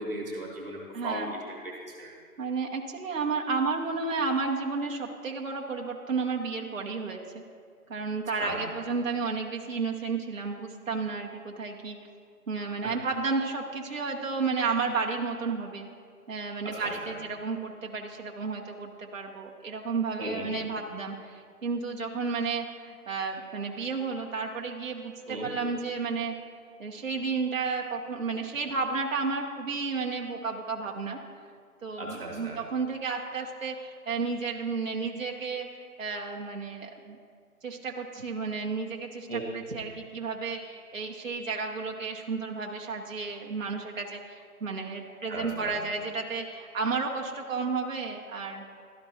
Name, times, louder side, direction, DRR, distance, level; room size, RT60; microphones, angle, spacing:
voice 1, 0.0-2.1 8.4-8.7 12.8-12.9 16.6-17.1 20.2-20.5 25.3-25.5 32.0-32.6 39.3-39.4 45.3-45.8, right 1 dB, 35° right, -3 dB, 1.2 m, -36 dB
voice 2, 0.9-1.3 2.4-7.4 7.9-12.0 12.5-15.9 16.3-26.3 26.8-31.2 31.8-37.2 37.6-48.6, right 4 dB, 60° right, 0 dB, 0.9 m, -32 dB
13.0 x 4.4 x 2.8 m, 2.1 s
figure-of-eight pair, 170°, 46 cm